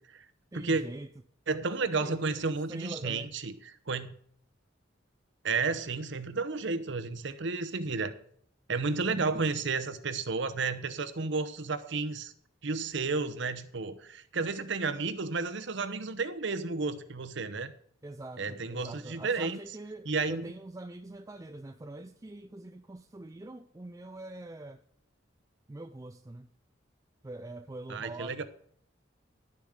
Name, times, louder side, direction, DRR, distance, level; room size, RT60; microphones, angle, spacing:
voice 1, 0.5-1.1 1.8-3.3 8.9-9.5 18.0-24.8 25.7-26.5 27.2-28.5, right 2 dB, 15° right, 8 dB, 0.4 m, -43 dB
voice 2, 1.5-3.5 3.9-4.1 5.4-8.1 8.7-12.3 12.6-17.7 18.4-19.6 20.1-20.5 27.9-28.4, right 4 dB, 65° right, 13 dB, 0.9 m, -32 dB
11.0 x 7.0 x 6.5 m, 0.64 s
head